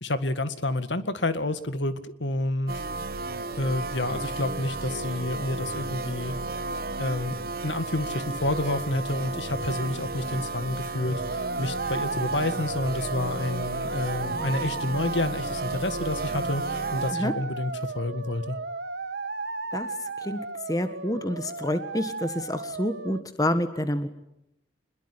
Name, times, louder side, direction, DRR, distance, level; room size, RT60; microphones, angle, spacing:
voice 1, 0.0-2.8 3.6-6.3 7.0-7.4 7.6-18.6, left 2 dB, 85° left, 11 dB, 2.0 m, -29 dB
sound 1, 2.7-17.1, right 2 dB, 50° right, 1.1 m, -33 dB
sound 2, 11.1-23.2, right 4 dB, 75° right, 1.4 m, -34 dB
voice 2, 20.7-24.1, left 1 dB, 20° left, 10 dB, 1.6 m, -28 dB
26.0 x 21.5 x 9.9 m, 0.82 s
head